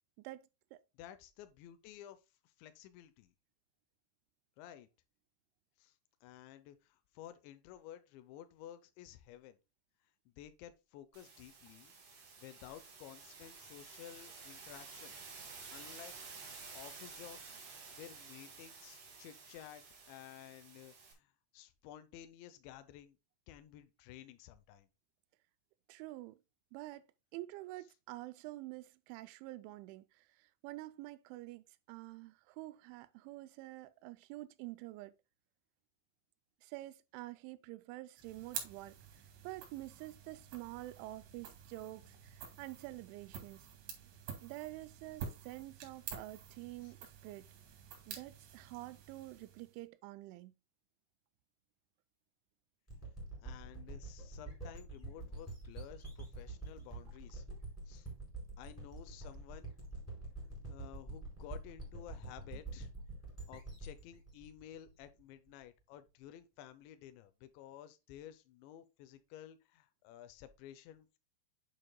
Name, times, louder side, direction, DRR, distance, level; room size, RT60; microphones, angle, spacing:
voice 1, 0.2-0.8 25.9-26.4 26.7-27.0 27.3-35.2 36.6-43.7 44.4-47.5 48.1-50.5, right 18 dB, 90° right, 3.0 m, -48 dB
voice 2, 1.0-3.3 4.6-4.9 5.8-6.0 6.2-9.6 10.3-11.9 12.4-15.2 15.7-16.1 16.7-17.6 17.9-23.2 23.5-24.9 46.8-46.9 53.4-57.4 57.9-58.1 58.6-59.7 60.7-62.9 63.5-71.2, left 11 dB, 80° left, 3.0 m, -53 dB
sound 1, 11.1-21.1, right 4 dB, 50° right, 2.1 m, -52 dB
sound 2, 38.2-49.8, right 7 dB, 70° right, 4.1 m, -49 dB
sound 3, 52.9-65.5, right 2 dB, 5° left, 3.8 m, -47 dB
8.7 x 6.7 x 2.2 m
omnidirectional pair, 5.3 m